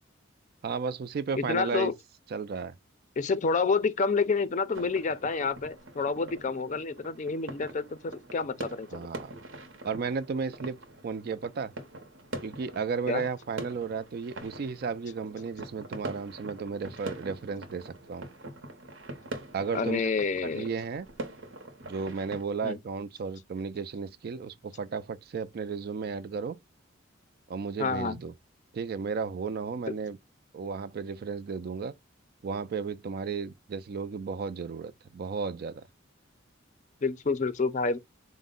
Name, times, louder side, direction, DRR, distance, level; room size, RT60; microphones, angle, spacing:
voice 1, 0.6-1.9 2.3-2.7 8.9-9.3 9.8-10.8 11.0-11.7 12.4-18.3 19.5-20.1 20.4-21.1 21.8-26.6 27.5-28.3 28.7-30.2 30.5-31.9 32.4-35.9, right 5 dB, 50° right, 0.3 m, -34 dB
voice 2, 1.3-1.9 3.2-9.1 13.1-13.2 19.7-20.7 22.6-22.8 27.8-28.2 37.0-38.0, left 4 dB, 40° left, 0.4 m, -28 dB
sound 1, 4.7-22.4, right 2 dB, 75° right, 0.8 m, -44 dB
4.3 x 2.0 x 3.7 m
head